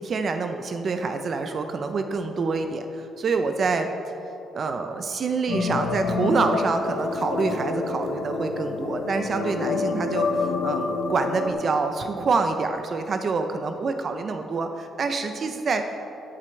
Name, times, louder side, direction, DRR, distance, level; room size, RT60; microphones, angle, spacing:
voice 1, 0.0-3.9 4.5-15.8, right 4 dB, 50° right, 7 dB, 0.6 m, -26 dB
sound 1, 5.5-11.5, left 4 dB, 70° left, 1.0 m, -27 dB
15.5 x 7.6 x 3.3 m, 2.9 s
cardioid pair, 90°, 0 cm